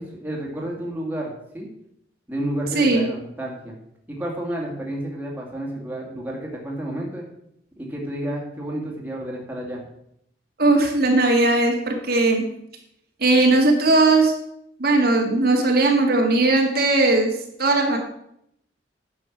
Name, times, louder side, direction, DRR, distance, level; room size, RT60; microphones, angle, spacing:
voice 1, 0.0-1.7 2.3-3.8 4.1-7.2 7.8-9.9, right 1 dB, 10° right, -2 dB, 2.2 m, -31 dB
voice 2, 2.7-3.1 10.6-12.4 13.2-14.3 14.8-17.3 17.6-18.0, right 2 dB, 55° right, 1 dB, 1.9 m, -18 dB
9.9 x 6.9 x 6.0 m, 0.75 s
head